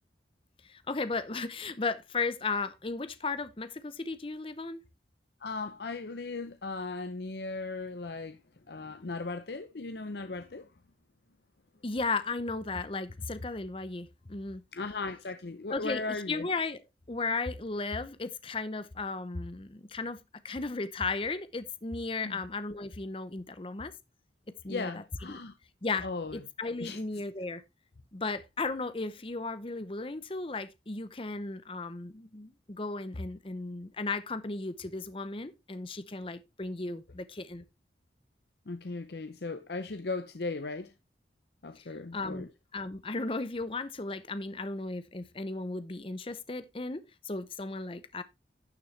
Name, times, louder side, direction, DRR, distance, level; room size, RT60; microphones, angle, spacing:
voice 1, 0.6-4.8 11.8-14.6 15.7-16.8 17.1-20.2 20.4-23.9 24.6-25.0 25.3-25.4 25.8-26.1 26.3-27.6 28.1-37.6 42.1-48.2, left 3 dB, 30° left, 0.7 m, -35 dB
voice 2, 5.4-8.4 8.7-10.7 14.7-16.5 22.2-22.4 24.7-25.5 26.0-26.4 26.8-27.0 38.7-40.9 41.6-42.5, left 3 dB, 70° left, 0.7 m, -37 dB
12.0 x 6.8 x 3.2 m
head